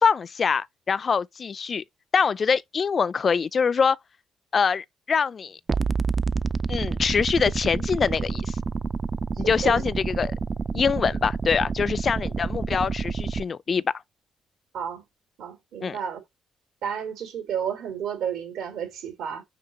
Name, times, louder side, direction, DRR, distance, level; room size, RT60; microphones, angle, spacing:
voice 1, 0.0-1.8 2.1-4.0 4.5-5.6 6.7-8.6 9.4-10.3 10.7-13.9 15.8-16.0, left 6 dB, 45° left, 0.4 m, -24 dB
sound 1, 5.7-13.4, right 4 dB, 35° right, 0.4 m, -28 dB
voice 2, 9.4-9.8 14.7-15.0 15.4-16.2 16.8-19.4, right 8 dB, 85° right, 3.2 m, -31 dB
5.7 x 5.2 x 4.2 m
cardioid pair, 90°, 0 cm